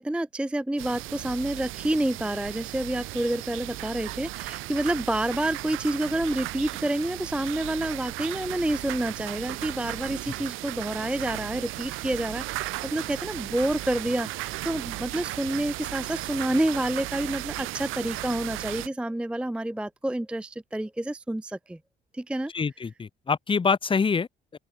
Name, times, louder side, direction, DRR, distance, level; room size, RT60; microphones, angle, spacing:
voice 1, 0.0-21.8 22.1-22.5, right 1 dB, 5° right, 0.5 m, -28 dB
sound 1, 0.8-18.9, right 18 dB, 90° right, 0.6 m, -36 dB
voice 2, 22.5-24.6, left 5 dB, 25° left, 0.8 m, -26 dB
open air
cardioid pair, 90°, 20 cm